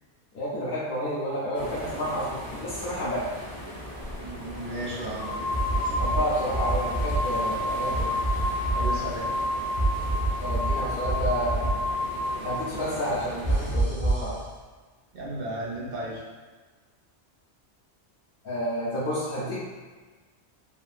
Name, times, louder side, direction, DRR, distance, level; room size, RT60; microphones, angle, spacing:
voice 1, 0.3-3.3 6.0-8.1 10.4-11.8 12.4-14.4 18.4-19.6, equal, 55° left, -10 dB, 0.9 m, -30 dB
sound 1, 1.5-13.7, equal, 30° left, 0.4 m, -39 dB
sound 2, 4.1-4.2 5.0-12.7, left 1 dB, 85° right, 1.2 m, -30 dB
voice 2, 4.2-5.3 5.8-6.0 8.7-9.3 15.1-16.2, right 1 dB, 55° right, -6 dB, 0.7 m, -35 dB
sound 3, 5.5-6.2 6.5-7.2 7.9-8.9 9.8-10.7 11.0-11.7 13.4-14.2, right 2 dB, 15° right, 0.5 m, -26 dB
2.9 x 2.5 x 2.4 m, 1.4 s
omnidirectional pair, 1.2 m